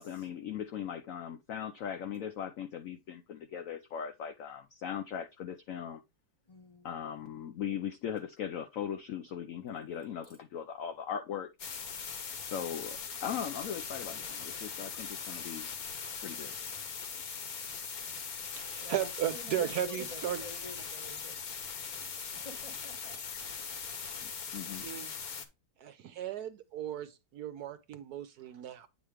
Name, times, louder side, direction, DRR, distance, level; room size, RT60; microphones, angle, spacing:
voice 1, 0.0-6.0 6.8-11.5 12.5-15.7 16.2-16.6 24.2-24.8, left 8 dB, 80° left, 0.7 m, -39 dB
voice 2, 6.5-6.9 10.2-10.4 18.8-21.4 22.4-23.8, left 1 dB, 20° left, 1.0 m, -49 dB
sound 1, 11.6-25.5, left 6 dB, 55° left, 1.4 m, -40 dB
voice 3, 18.5-20.4 24.8-25.1 25.8-28.9, right 10 dB, 70° right, 1.0 m, -36 dB
8.5 x 3.0 x 4.9 m
omnidirectional pair, 2.0 m